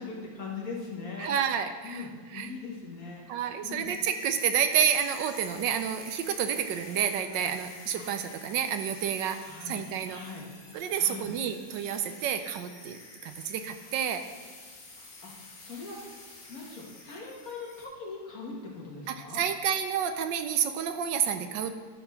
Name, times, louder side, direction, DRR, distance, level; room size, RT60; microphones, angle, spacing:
voice 1, 0.0-1.3 1.8-3.2 3.6-3.9 9.4-10.5 10.9-11.3 15.2-16.1 16.5-19.4, left 4 dB, 50° left, -3 dB, 2.0 m, -41 dB
voice 2, 1.2-2.5 3.3-10.2 10.7-14.2 19.1-21.7, right 8 dB, 75° right, 8 dB, 1.2 m, -29 dB
sound 1, 3.8-17.8, left 2 dB, 65° left, 2.5 m, -48 dB
11.5 x 4.3 x 5.6 m, 1.5 s
omnidirectional pair, 2.0 m